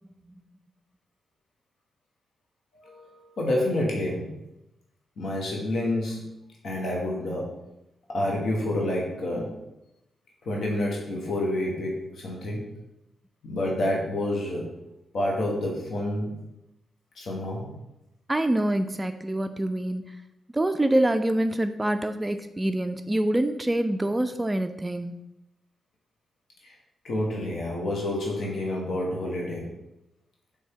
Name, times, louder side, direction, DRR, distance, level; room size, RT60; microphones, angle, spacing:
voice 1, 2.7-4.3 5.2-6.3 6.6-7.5 8.1-9.5 10.4-12.6 13.4-14.8 15.1-16.4 17.1-17.7 26.6-26.7 27.0-29.7, left 1 dB, 70° left, -2 dB, 1.0 m, -28 dB
voice 2, 18.3-20.2 20.5-25.2, right 1 dB, 20° right, 7 dB, 0.3 m, -25 dB
3.5 x 3.2 x 4.6 m, 0.89 s
supercardioid pair, 45°, 0 cm